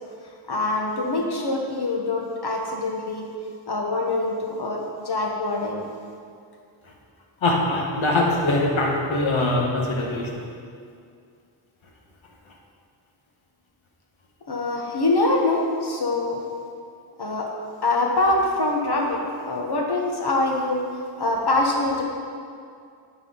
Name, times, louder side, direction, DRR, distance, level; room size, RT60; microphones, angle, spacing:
voice 1, 0.5-3.3 3.7-5.9 14.5-16.4 17.2-17.5 17.8-20.8 21.2-22.0, left 2 dB, 50° left, -1 dB, 1.1 m, -24 dB
voice 2, 7.4-10.3, left 2 dB, 70° left, -1 dB, 1.3 m, -22 dB
9.6 x 4.4 x 3.8 m, 2.3 s
cardioid pair, 50°, 50 cm